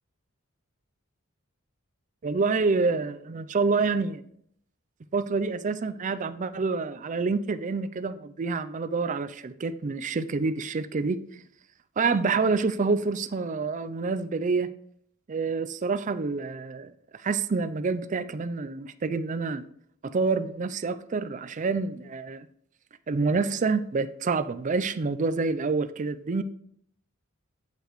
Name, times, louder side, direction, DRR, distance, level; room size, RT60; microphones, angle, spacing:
voice 1, 2.2-4.2 5.1-11.2 12.0-14.7 15.3-16.9 17.2-19.6 20.0-22.5 23.1-26.4, right 4 dB, 35° right, 0.4 m, -27 dB
8.4 x 8.0 x 3.1 m
head